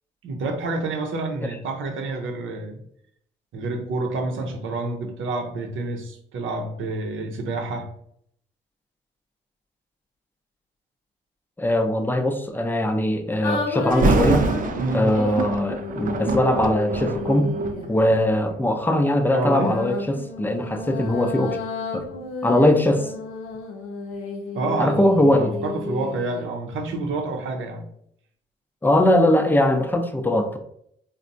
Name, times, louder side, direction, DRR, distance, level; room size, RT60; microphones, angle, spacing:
voice 1, 0.2-2.8 3.5-7.9 14.8-15.1 19.3-19.8 24.5-27.8, right 2 dB, 70° right, 3 dB, 0.8 m, -28 dB
voice 2, 11.6-14.5 14.9-17.4 17.9-21.6 21.9-22.0 22.4-23.1 24.8-25.5 28.8-30.6, left 1 dB, 10° left, 7 dB, 0.6 m, -21 dB
sound 1, 13.4-17.9 19.4-26.5, left 3 dB, 80° left, 0.6 m, -32 dB
Thunder, 13.9-18.9 19.5-19.8 20.4-23.2 23.5-23.6, right 3 dB, 40° right, 0.5 m, -26 dB
4.1 x 2.2 x 2.6 m, 0.69 s
supercardioid pair, 55°, 21 cm